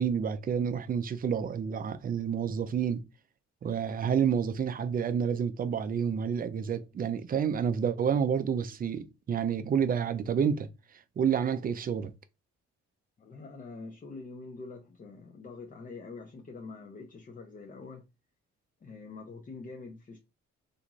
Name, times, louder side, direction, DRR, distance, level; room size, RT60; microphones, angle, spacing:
voice 1, 0.0-3.0 3.6-10.7 11.2-12.1, right 7 dB, 30° right, 0.4 m, -29 dB
voice 2, 13.2-18.0 18.8-20.2, left 3 dB, 30° left, 0.6 m, -45 dB
2.5 x 2.3 x 3.0 m
cardioid pair, 90°, 30 cm